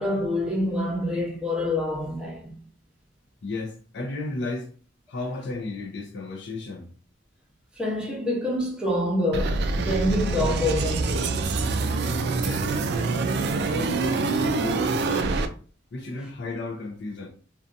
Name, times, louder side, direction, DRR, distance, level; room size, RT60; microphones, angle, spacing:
voice 1, 0.0-2.6 7.8-11.4, left 1 dB, 5° right, 0.7 m, -26 dB
voice 2, 3.4-4.7 5.1-6.9 12.3-12.7 13.7-15.5 15.9-17.3, left 2 dB, 65° left, 0.5 m, -34 dB
sound 1, 9.3-15.5, right 3 dB, 60° right, 0.3 m, -25 dB
2.5 x 2.3 x 2.5 m
head